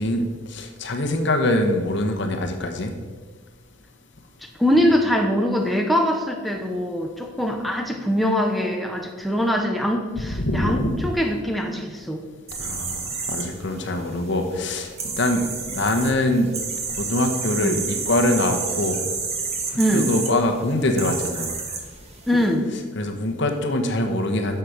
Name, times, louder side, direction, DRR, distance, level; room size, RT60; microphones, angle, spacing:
voice 1, 0.0-2.9 10.4-11.0 12.6-16.5 17.0-19.0 19.9-21.5 23.0-24.6, left 1 dB, 65° left, 5 dB, 1.2 m, -23 dB
voice 2, 4.4-12.3 17.6-17.8 19.8-20.1 22.3-22.7, equal, ahead, 2 dB, 0.8 m, -23 dB
sound 1, 12.5-22.5, right 4 dB, 35° right, 1.5 m, -31 dB
10.5 x 6.9 x 5.1 m, 1.4 s
head